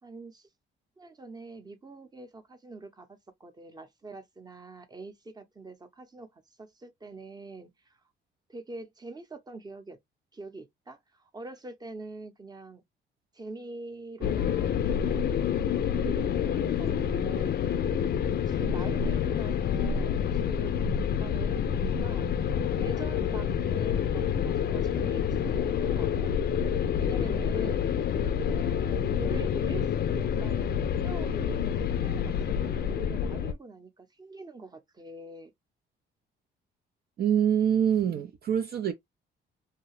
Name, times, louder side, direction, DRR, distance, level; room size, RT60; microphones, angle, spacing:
voice 1, 0.0-0.5 1.0-8.0 8.5-10.0 10.3-12.8 13.3-14.9 15.8-18.0 18.5-22.3 22.8-26.3 27.0-27.9 28.4-35.5, right 2 dB, 20° right, 0.8 m, -44 dB
sound 1, 14.2-33.5, left 8 dB, 55° left, 0.4 m, -28 dB
voice 2, 37.2-38.9, right 9 dB, 50° right, 0.5 m, -25 dB
2.8 x 2.2 x 3.0 m
cardioid pair, 90°, 20 cm